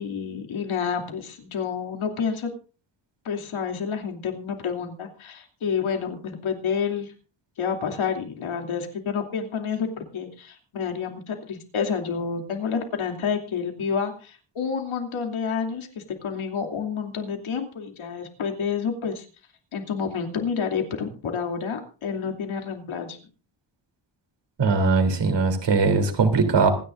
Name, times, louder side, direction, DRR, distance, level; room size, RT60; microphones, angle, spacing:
voice 1, 0.0-2.5 3.2-7.1 7.6-19.3 19.7-23.2, left 6 dB, 80° left, 3 dB, 3.0 m, -29 dB
voice 2, 24.6-26.7, right 4 dB, 60° right, 6 dB, 3.4 m, -20 dB
26.5 x 10.5 x 2.6 m, 0.36 s
wide cardioid pair, 135°, 48 cm